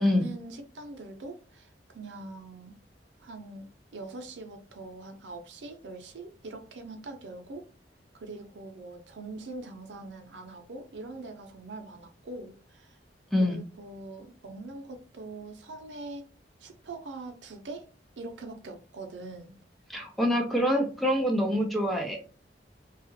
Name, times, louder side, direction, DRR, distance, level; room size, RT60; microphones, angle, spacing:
voice 1, 0.0-2.7 3.2-7.7 8.1-13.0 13.4-16.3 16.6-17.9 18.2-19.5, right 2 dB, 90° right, 0.6 m, -43 dB
voice 2, 13.3-13.6 19.9-22.2, left 1 dB, ahead, 0.5 m, -25 dB
2.8 x 2.4 x 2.7 m
head